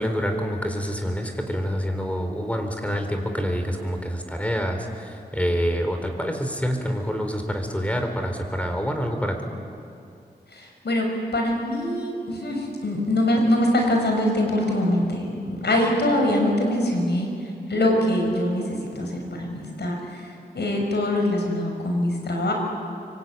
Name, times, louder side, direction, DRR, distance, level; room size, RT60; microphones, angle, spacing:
voice 1, 0.0-9.5, equal, 10° left, 5 dB, 4.2 m, -27 dB
voice 2, 10.5-11.1 11.3-17.3 17.7-20.3 20.5-22.5, left 1 dB, 80° left, 2 dB, 6.2 m, -23 dB
24.5 x 24.5 x 9.3 m, 2.5 s
wide cardioid pair, 70°, 17 cm